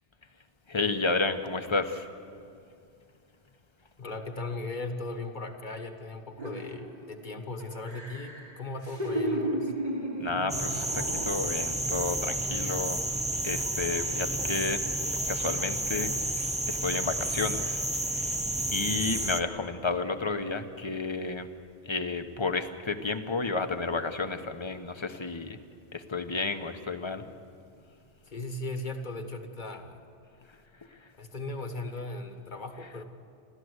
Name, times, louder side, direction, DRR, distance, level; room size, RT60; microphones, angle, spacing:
voice 1, 0.7-2.1 10.2-13.0 13.4-14.8 15.3-18.3 18.7-21.5 21.9-25.6 25.9-27.2, left 3 dB, 30° left, 8 dB, 1.0 m, -31 dB
voice 2, 4.0-9.7 28.3-30.0 31.2-33.0, left 2 dB, 50° left, 6 dB, 1.7 m, -37 dB
sound 1, 6.4-7.2 7.6-11.8 12.1-12.3, right 1 dB, 45° right, 2.1 m, -34 dB
sound 2, 10.5-19.4, right 1 dB, 10° right, 0.6 m, -31 dB
29.0 x 13.5 x 8.1 m, 2.4 s
omnidirectional pair, 1.0 m